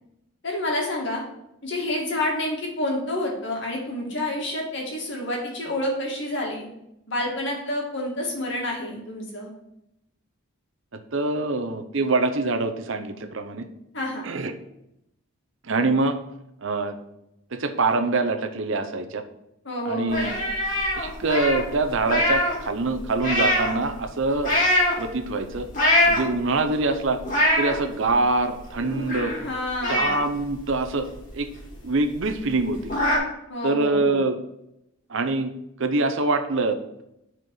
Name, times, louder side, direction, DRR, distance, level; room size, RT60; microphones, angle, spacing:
voice 1, 0.4-1.2 1.6-6.7 7.1-9.5 13.9-14.2 19.6-20.4 29.4-30.1 33.5-34.2, left 1 dB, 55° left, -2 dB, 2.2 m, -28 dB
voice 2, 10.9-13.7 14.2-14.5 15.6-16.2 16.6-17.0 17.5-19.2 19.8-20.4 20.9-24.5 25.0-25.7 26.0-27.2 27.6-29.3 29.9-31.1 31.3-31.5 31.8-32.9 33.6-34.4 35.1-35.5 35.8-37.0, right 3 dB, 60° right, 7 dB, 0.7 m, -24 dB
sound 1, 20.1-22.6 22.9-23.8 24.4-25.0 25.5-26.5 27.0-27.8 28.2-28.3 28.6-29.5 29.8-31.4 31.7-31.8 32.2-32.3 32.5-33.2, left 1 dB, 40° left, 2.2 m, -23 dB
6.3 x 4.5 x 6.4 m, 0.83 s
head